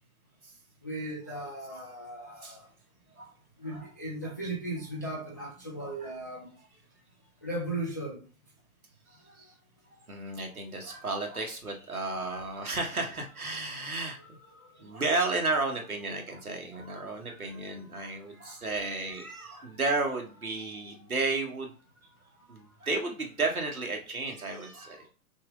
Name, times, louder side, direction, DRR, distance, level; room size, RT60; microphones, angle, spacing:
voice 1, 0.8-2.6 3.6-6.5 7.4-8.2 14.2-14.7 16.9-17.0 17.3-17.4 18.3-18.5, right 1 dB, 15° left, 0.3 m, -37 dB
voice 2, 2.3-2.6 3.2-3.3 3.6-3.9 4.2-4.3 5.4-6.2 9.4-9.5 10.1-14.4 14.8-21.7 22.5-25.1, right 3 dB, 80° right, 1.4 m, -33 dB
5.9 x 2.1 x 3.7 m
figure-of-eight pair, 110°, 43 cm